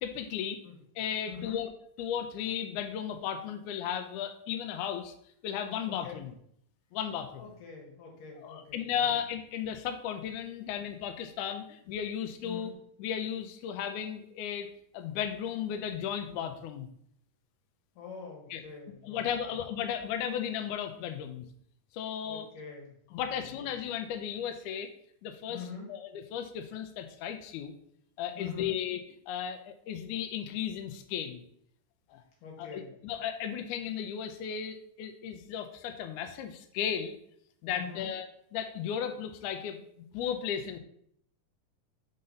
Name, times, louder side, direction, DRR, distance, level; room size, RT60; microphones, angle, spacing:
voice 1, 0.0-0.6 1.0-1.7 2.0-5.1 5.4-6.3 6.9-7.4 8.4-12.7 13.0-14.7 14.9-16.9 18.5-18.6 19.0-21.5 21.9-22.5 23.1-24.9 25.2-27.7 28.2-31.4 32.1-32.2 32.6-37.2 37.6-38.3 38.5-40.8, left 9 dB, 90° left, 6 dB, 1.8 m, -35 dB
voice 2, 1.3-1.6 5.9-6.2 7.4-9.2 12.4-12.7 18.0-19.6 22.2-22.9 23.2-23.8 25.5-25.9 28.3-28.8 32.4-32.9 37.7-38.1, left 6 dB, 70° left, -1 dB, 3.0 m, -45 dB
5.6 x 3.9 x 5.2 m, 0.68 s
omnidirectional pair, 4.1 m